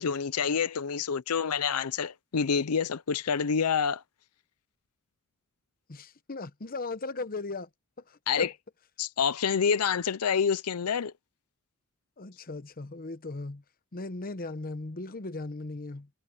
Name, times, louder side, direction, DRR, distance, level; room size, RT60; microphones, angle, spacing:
voice 1, 0.0-4.0 8.3-8.5 9.0-11.1, left 6 dB, 90° left, 0.6 m, -27 dB
voice 2, 5.9-7.7 8.1-8.5 12.2-13.6 13.9-16.1, left 3 dB, 40° left, 0.9 m, -37 dB
head